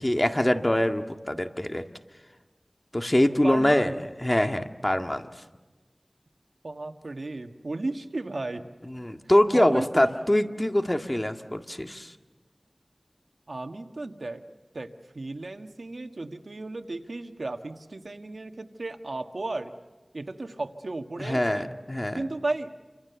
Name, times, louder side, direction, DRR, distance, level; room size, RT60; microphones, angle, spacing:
voice 1, 0.0-1.8 2.9-3.9 4.2-5.3 8.9-12.1 21.2-22.3, left 1 dB, 25° left, 6 dB, 1.8 m, -24 dB
voice 2, 3.4-3.9 6.6-8.7 9.5-10.0 13.5-14.4 14.7-19.7 20.1-21.7 22.1-22.7, right 2 dB, 90° right, 7 dB, 1.5 m, -34 dB
29.0 x 26.0 x 6.9 m, 1.3 s
wide cardioid pair, 50°, 0 cm